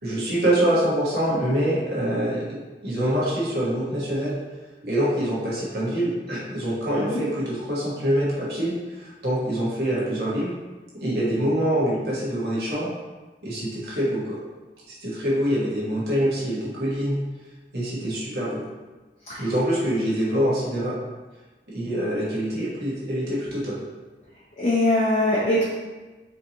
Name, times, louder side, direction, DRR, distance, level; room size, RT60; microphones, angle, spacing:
voice 1, 0.0-4.4 4.8-10.5 11.0-12.9 13.4-14.4 14.9-17.2 17.7-18.6 19.4-21.0 21.7-23.8, equal, 60° right, -7 dB, 1.3 m, -25 dB
voice 2, 24.6-25.6, left 1 dB, 40° left, -7 dB, 0.6 m, -22 dB
4.4 x 2.8 x 2.9 m, 1.3 s
head